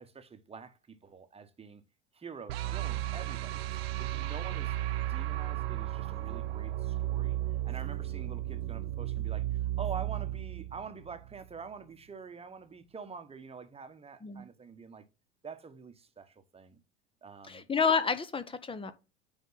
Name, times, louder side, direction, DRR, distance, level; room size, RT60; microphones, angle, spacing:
voice 1, 0.0-1.8 2.1-15.0 15.4-16.8 17.2-17.6, right 5 dB, 20° right, 1.2 m, -46 dB
sound 1, 2.5-11.6, right 14 dB, 65° right, 0.8 m, -34 dB
voice 2, 17.5-18.9, left 5 dB, 15° left, 1.0 m, -29 dB
9.3 x 3.6 x 4.0 m
hypercardioid pair, 80°, 32 cm